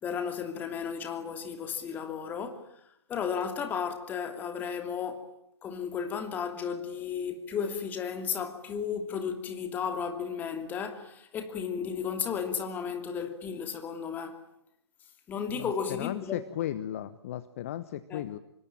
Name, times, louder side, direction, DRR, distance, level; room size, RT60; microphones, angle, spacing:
voice 1, 0.0-2.7 3.1-5.3 5.6-14.4 15.3-16.4 18.1-18.3, left 7 dB, 10° left, 2.8 m, -34 dB
voice 2, 15.5-18.4, left 12 dB, 30° left, 1.1 m, -36 dB
26.0 x 24.0 x 8.9 m
figure-of-eight pair, 130°, 14 cm